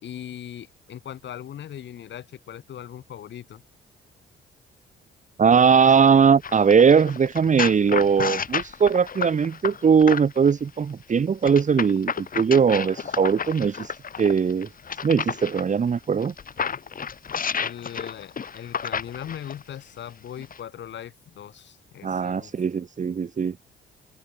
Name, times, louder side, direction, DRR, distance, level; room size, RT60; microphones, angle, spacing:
voice 1, 0.0-3.6 17.6-22.5, left 10 dB, 65° left, 3.7 m, -39 dB
voice 2, 5.4-13.9 14.2-14.7 15.0-16.3 22.0-23.6, right 6 dB, 40° right, 1.7 m, -20 dB
sound 1, 6.4-10.5 11.4-15.6 16.2-19.6 20.4-20.6, left 6 dB, 45° left, 4.7 m, -31 dB
cardioid pair, 90°, 20 cm